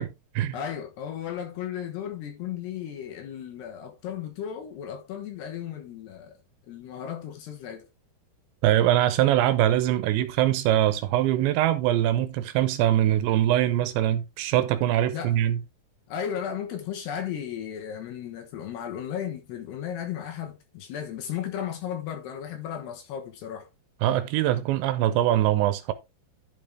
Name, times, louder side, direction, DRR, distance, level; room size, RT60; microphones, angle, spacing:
voice 1, 0.0-0.6 8.6-15.6 24.0-25.9, right 12 dB, 80° right, 2.8 m, -23 dB
voice 2, 0.5-6.4 6.7-7.8 15.1-15.4 16.1-23.7, left 9 dB, 70° left, 3.1 m, -35 dB
11.5 x 5.5 x 3.5 m
omnidirectional pair, 5.4 m